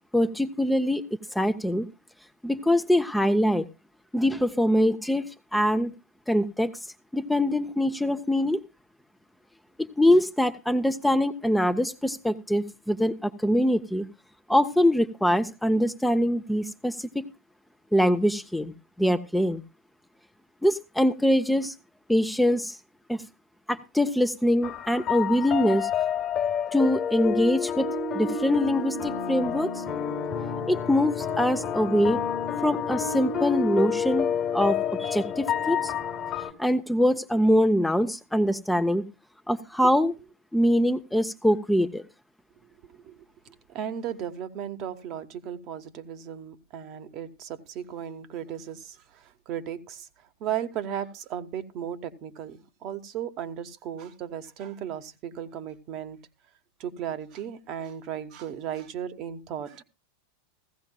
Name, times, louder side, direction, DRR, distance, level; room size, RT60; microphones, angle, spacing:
voice 1, 0.1-1.0 1.3-1.9 2.4-3.7 4.1-5.9 6.3-6.7 7.1-8.6 9.8-14.1 14.5-17.3 17.9-18.7 19.0-19.6 20.6-21.7 22.1-22.8 23.1-23.2 23.7-25.9 26.7-29.8 30.7-32.2 32.6-35.9 36.6-39.1 39.5-40.1 40.5-42.0, equal, 5° left, 0.5 m, -23 dB
sound 1, 24.6-36.5, left 7 dB, 30° left, 1.2 m, -29 dB
voice 2, 42.9-43.2 43.7-50.1 50.4-56.2 56.8-59.8, right 9 dB, 40° right, 0.9 m, -36 dB
16.0 x 15.5 x 2.2 m
figure-of-eight pair, 85°, 0 cm